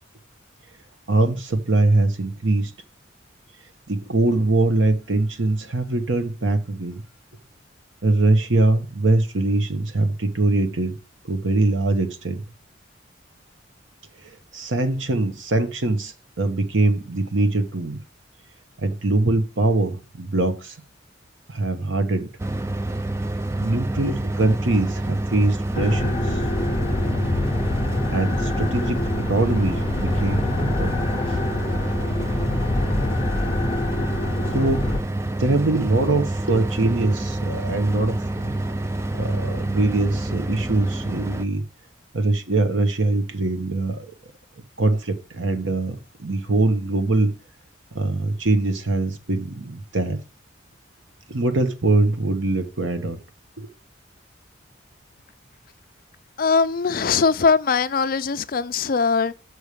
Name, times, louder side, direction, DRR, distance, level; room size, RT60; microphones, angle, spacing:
voice 1, 1.1-2.7 3.9-7.0 8.0-10.9 11.2-12.4 14.5-18.0 18.8-20.7 21.5-22.3 23.6-26.4 28.1-31.4 31.9-32.0 34.5-34.9 35.3-38.5 39.1-41.6 42.1-44.1 44.8-47.3 47.9-50.2 51.3-53.2 53.6-53.7, right 2 dB, 80° right, 1.2 m, -22 dB
sound 1, 22.4-41.5, right 1 dB, 15° right, 0.4 m, -28 dB
sound 2, 25.7-35.0, left 2 dB, 25° left, 0.8 m, -26 dB
voice 2, 56.4-59.3, left 5 dB, 45° left, 0.4 m, -21 dB
6.4 x 4.9 x 6.7 m
head